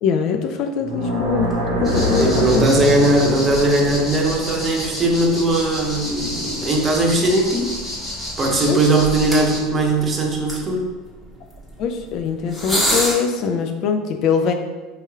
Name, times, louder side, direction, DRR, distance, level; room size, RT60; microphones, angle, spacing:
voice 1, 0.0-2.6 8.7-8.8 11.8-14.5, left 6 dB, 55° left, 5 dB, 0.3 m, -22 dB
sound 1, 0.8-5.9, equal, 85° right, 0.7 m, -25 dB
sound 2, 1.2-13.2, equal, 5° left, 1.3 m, -32 dB
sound 3, 1.8-9.6, left 1 dB, 25° left, 1.4 m, -31 dB
voice 2, 2.2-7.7 8.4-10.9, right 2 dB, 30° right, 0 dB, 0.7 m, -19 dB
3.2 x 2.9 x 2.3 m, 1.3 s
hypercardioid pair, 80°, 0 cm